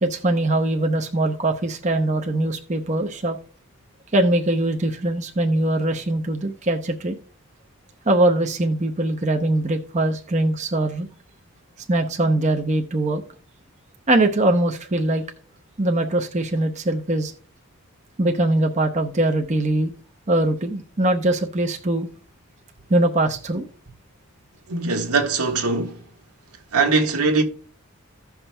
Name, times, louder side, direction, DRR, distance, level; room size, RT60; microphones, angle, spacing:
voice 1, 0.0-3.4 4.1-7.2 8.1-11.1 11.9-13.2 14.1-15.2 15.8-17.3 18.2-19.9 20.3-22.1 22.9-23.7, right 1 dB, 30° right, 0.7 m, -22 dB
voice 2, 24.7-26.0 26.7-27.4, right 4 dB, 90° right, 1.5 m, -21 dB
16.0 x 5.8 x 2.2 m
head